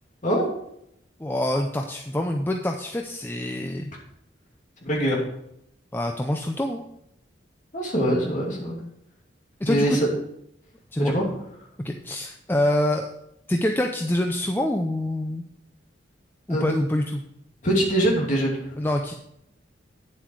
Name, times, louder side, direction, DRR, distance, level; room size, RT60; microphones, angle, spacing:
voice 1, 1.2-3.9 5.9-6.8 9.6-10.0 10.9-11.1 11.8-13.1 13.5-15.4 16.5-17.2 18.8-19.1, left 1 dB, 10° left, 3 dB, 0.5 m, -25 dB
voice 2, 4.8-5.2 7.7-8.8 9.7-10.1 11.0-11.2 16.5-16.6 17.6-18.6, right 1 dB, 40° left, -3 dB, 2.8 m, -23 dB
9.2 x 7.5 x 4.7 m, 0.77 s
head